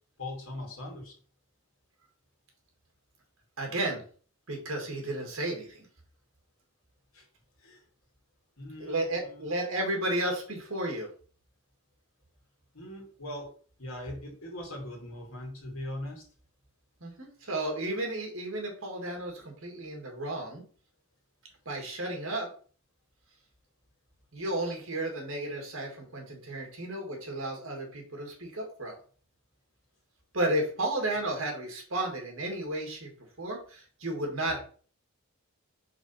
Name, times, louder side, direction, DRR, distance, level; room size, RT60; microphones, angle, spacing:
voice 1, 0.2-1.1 7.1-7.2 7.6-7.8 8.6-9.5 12.7-13.5 13.8-16.2, left 1 dB, 70° left, 0 dB, 2.4 m, -40 dB
voice 2, 3.6-4.0 4.5-5.9 8.8-11.1 17.0-20.6 21.7-22.5 24.3-29.0 30.3-33.1 33.4-34.6, right 1 dB, 60° right, 1 dB, 2.3 m, -33 dB
5.0 x 4.0 x 5.7 m, 0.43 s
head